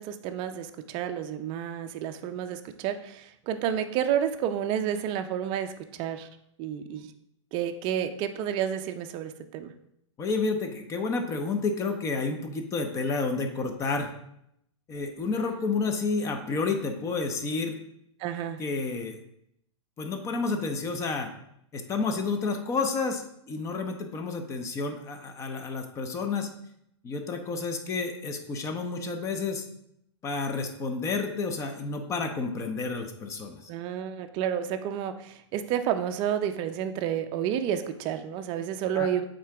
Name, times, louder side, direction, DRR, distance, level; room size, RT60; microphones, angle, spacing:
voice 1, 0.0-5.7 6.0-6.3 6.6-7.1 7.5-9.7 18.2-18.6 33.7-39.2, right 9 dB, 30° right, 8 dB, 0.5 m, -30 dB
voice 2, 10.2-14.1 14.9-17.8 18.6-19.2 20.0-21.3 21.7-26.5 27.0-29.6 30.2-33.7 38.9-39.1, left 4 dB, 20° left, 6 dB, 0.7 m, -30 dB
8.5 x 3.8 x 3.4 m, 0.76 s
hypercardioid pair, 135°, 16 cm